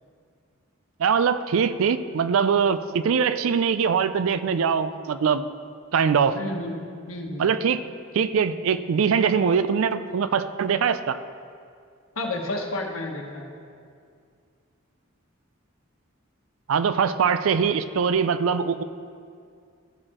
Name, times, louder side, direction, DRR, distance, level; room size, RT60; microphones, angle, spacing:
voice 1, 1.0-5.4 5.9-6.4 7.4-7.8 8.1-11.2 16.7-18.8, right 6 dB, 70° right, 12 dB, 0.4 m, -22 dB
voice 2, 6.3-7.5 12.2-13.5, left 2 dB, 70° left, 1 dB, 1.1 m, -31 dB
14.0 x 6.5 x 3.0 m, 2.3 s
head